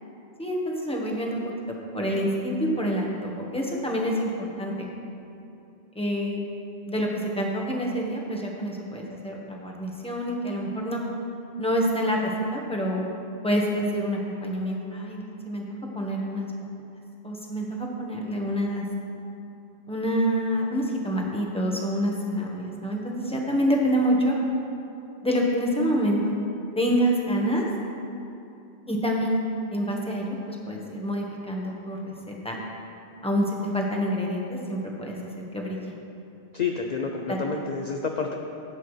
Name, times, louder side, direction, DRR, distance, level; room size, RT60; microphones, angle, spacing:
voice 1, 0.4-1.4 1.9-4.9 5.9-6.4 6.9-7.1 7.4-11.0 11.6-13.1 13.4-13.6 13.9-15.6 15.9-16.5 17.2-18.8 19.9-24.3 25.2-26.2 26.8-27.6 28.9-29.4 29.7-32.6 33.2-33.4 33.7-35.9 37.3-37.4, equal, 5° left, -2 dB, 1.2 m, -27 dB
voice 2, 36.5-38.3, left 5 dB, 50° left, 2 dB, 0.6 m, -29 dB
15.5 x 8.1 x 3.2 m, 2.8 s
omnidirectional pair, 1.2 m